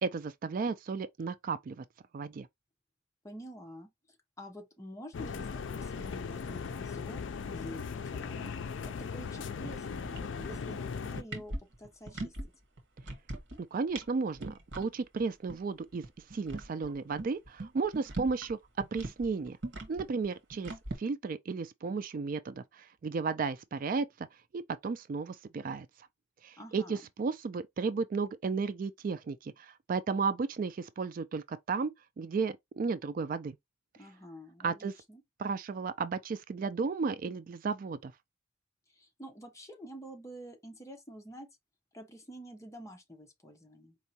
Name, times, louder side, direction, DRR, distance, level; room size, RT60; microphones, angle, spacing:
voice 1, 0.0-1.8 2.1-2.5 13.6-16.0 16.3-18.6 18.9-19.6 19.9-20.7 21.0-24.3 24.5-25.9 26.4-33.6 34.6-34.9 35.4-38.1, right 4 dB, 45° right, 0.3 m, -34 dB
voice 2, 3.2-3.9 4.4-8.5 8.8-12.5 26.6-27.0 34.0-35.2 38.9-41.5 41.9-44.0, equal, 15° left, 0.9 m, -48 dB
sound 1, 5.1-11.2, left 5 dB, 75° left, 0.4 m, -38 dB
sound 2, 9.6-9.8 10.0-10.8 11.1-12.5 12.8-13.6 13.9-14.1 14.4-14.9 15.2-15.3 15.5-15.6 15.9-18.5 18.8-21.0, right 2 dB, 70° right, 1.5 m, -40 dB
4.5 x 3.0 x 2.8 m
head